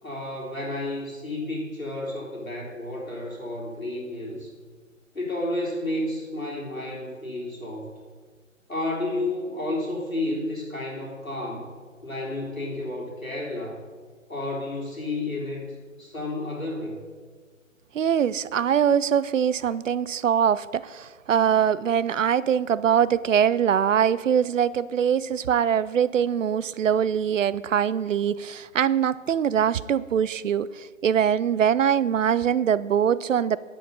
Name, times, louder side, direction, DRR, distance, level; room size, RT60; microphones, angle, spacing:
voice 1, 0.0-4.5 5.1-7.9 8.7-11.7 12.0-13.8 14.3-17.0, left 2 dB, 90° left, -2 dB, 3.4 m, -31 dB
voice 2, 17.9-33.6, right 8 dB, 70° right, 19 dB, 0.5 m, -23 dB
9.4 x 6.9 x 5.3 m, 1.5 s
figure-of-eight pair, 140°, 40 cm